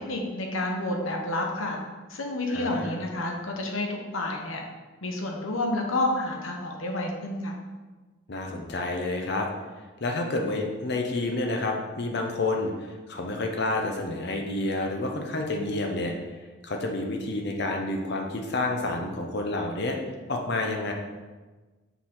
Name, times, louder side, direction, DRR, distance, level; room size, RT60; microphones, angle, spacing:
voice 1, 0.1-1.8 2.1-4.6 5.0-7.5, left 2 dB, 85° left, 1 dB, 1.1 m, -29 dB
voice 2, 2.5-3.0 8.3-9.5 10.0-20.0 20.3-20.9, left 2 dB, 55° left, 2 dB, 0.8 m, -29 dB
7.0 x 4.4 x 3.8 m, 1.3 s
head